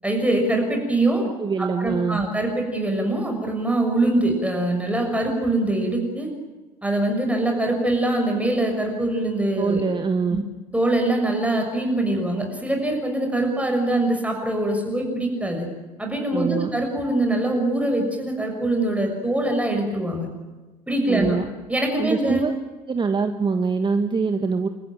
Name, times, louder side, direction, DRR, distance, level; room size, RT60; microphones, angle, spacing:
voice 1, 0.0-1.2 1.6-6.3 6.8-9.8 10.3-10.4 10.7-15.7 16.0-20.3 20.9-21.4 21.7-22.5, right 1 dB, 5° right, 2 dB, 6.3 m, -23 dB
voice 2, 1.4-2.2 9.6-10.4 16.3-16.7 21.1-21.5 22.0-22.5 22.9-24.7, right 5 dB, 25° right, 7 dB, 1.5 m, -24 dB
28.5 x 14.5 x 9.0 m, 1.2 s
figure-of-eight pair, 65°, 20 cm